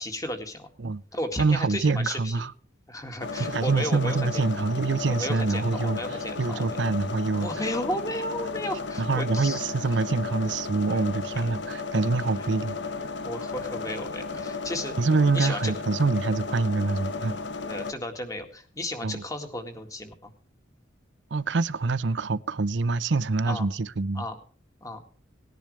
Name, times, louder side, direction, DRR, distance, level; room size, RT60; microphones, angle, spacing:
voice 1, 0.0-0.7 1.1-2.4 2.9-4.4 5.1-6.8 7.4-9.6 10.9-11.0 13.2-15.0 15.3-15.7 17.6-20.3 23.5-23.7 24.2-24.4 24.8-25.0, left 1 dB, 20° left, 2.0 m, -34 dB
voice 2, 1.4-2.5 3.5-6.0 6.4-7.5 9.0-12.8 15.0-17.4 19.0-19.2 21.3-24.2, right 3 dB, 70° right, 0.6 m, -25 dB
sound 1, 3.2-17.9, left 4 dB, 65° left, 0.9 m, -34 dB
19.0 x 10.5 x 3.3 m
head